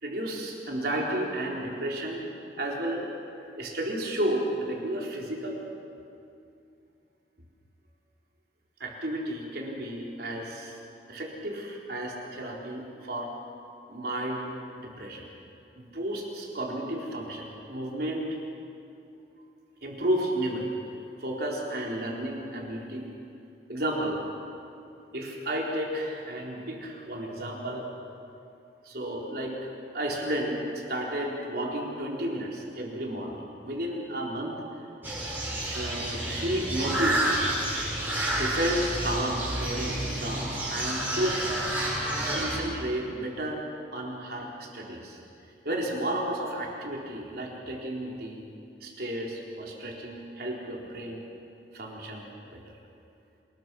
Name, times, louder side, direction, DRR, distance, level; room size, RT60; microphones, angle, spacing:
voice 1, 0.0-2.2 2.6-3.0 3.3-5.6 8.8-10.8 11.1-13.3 13.9-14.5 14.8-15.2 15.8-18.4 19.8-20.7 21.2-23.1 23.7-24.2 25.1-27.9 28.8-34.5 35.7-37.5 38.3-41.4 42.3-43.6 43.9-45.2 45.6-48.4 48.8-51.2 51.7-52.6, right 1 dB, 60° right, -2 dB, 4.2 m, -32 dB
sound 1, 35.0-42.6, right 1 dB, 10° right, 7.0 m, -29 dB
27.0 x 21.0 x 6.3 m, 2.7 s
head